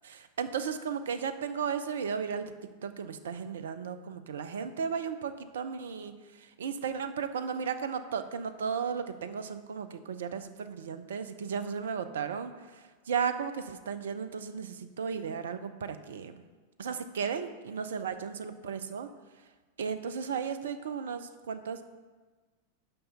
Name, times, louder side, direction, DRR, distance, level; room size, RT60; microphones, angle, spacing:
voice 1, 0.0-2.5 2.8-16.4 16.8-19.1 19.8-21.8, right 6 dB, 65° right, 10 dB, 0.5 m, -35 dB
5.6 x 5.3 x 6.7 m, 1.4 s
figure-of-eight pair, 90°, 0 cm